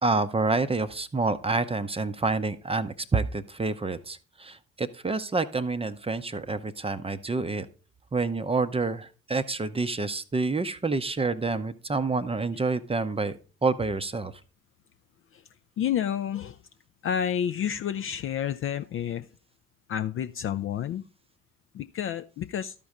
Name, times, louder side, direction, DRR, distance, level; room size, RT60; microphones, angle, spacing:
voice 1, 0.0-7.7 8.1-14.4, right 3 dB, 15° right, 11 dB, 0.6 m, -28 dB
voice 2, 15.8-16.6 17.0-19.3 19.9-21.0 21.7-22.7, left 9 dB, 35° left, 10 dB, 0.4 m, -30 dB
12.5 x 5.1 x 3.6 m, 0.34 s
figure-of-eight pair, 45°, 38 cm